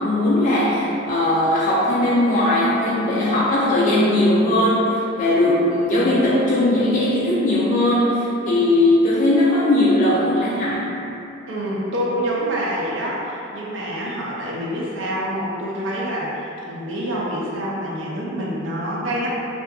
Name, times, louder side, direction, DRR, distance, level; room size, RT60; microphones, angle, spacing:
voice 1, 0.0-10.9, left 1 dB, 45° left, -7 dB, 0.3 m, -19 dB
voice 2, 11.5-19.3, equal, 75° right, -5 dB, 0.5 m, -26 dB
2.7 x 2.3 x 2.3 m, 2.9 s
head